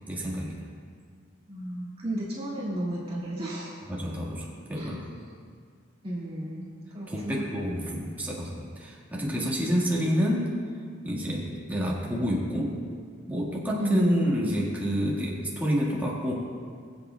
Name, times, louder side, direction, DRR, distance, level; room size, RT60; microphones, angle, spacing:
voice 1, 0.1-0.6 3.9-5.1 7.1-10.5 11.0-12.8 13.3-16.3, equal, 10° right, -5 dB, 1.6 m, -28 dB
voice 2, 1.5-3.7 4.7-5.0 6.0-7.4 13.8-14.1, right 1 dB, 30° right, -7 dB, 2.0 m, -33 dB
21.0 x 8.1 x 2.3 m, 2.1 s
head